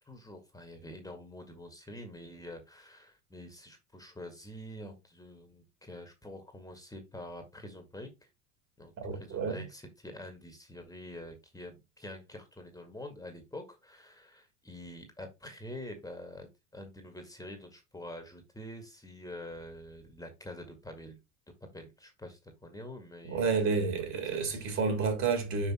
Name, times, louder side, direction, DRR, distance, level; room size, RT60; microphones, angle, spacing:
voice 1, 0.1-8.1 8.8-21.2 21.7-23.8 24.3-24.8, left 1 dB, 10° left, 1.8 m, -46 dB
voice 2, 9.0-9.6 23.2-25.7, right 4 dB, 50° right, 3.8 m, -30 dB
6.0 x 5.1 x 4.3 m
hypercardioid pair, 85°, 37 cm